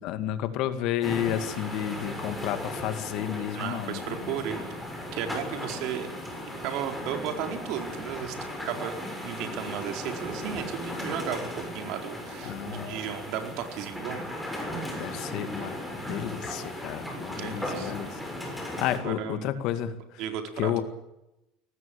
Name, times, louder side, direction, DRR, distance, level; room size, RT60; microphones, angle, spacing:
voice 1, 0.0-4.4 12.4-12.9 14.9-18.2 18.6-20.2 20.6-20.8, left 11 dB, 55° left, 10 dB, 2.3 m, -31 dB
sound 1, 1.0-19.0, left 1 dB, 5° left, 6.7 m, -36 dB
voice 2, 3.5-4.6 5.1-6.1 6.6-8.4 8.7-14.2 17.3-17.9 18.9-19.5 20.2-20.7, right 9 dB, 60° right, 5 dB, 4.4 m, -34 dB
23.5 x 18.5 x 8.7 m, 0.90 s
cardioid pair, 145°, 0 cm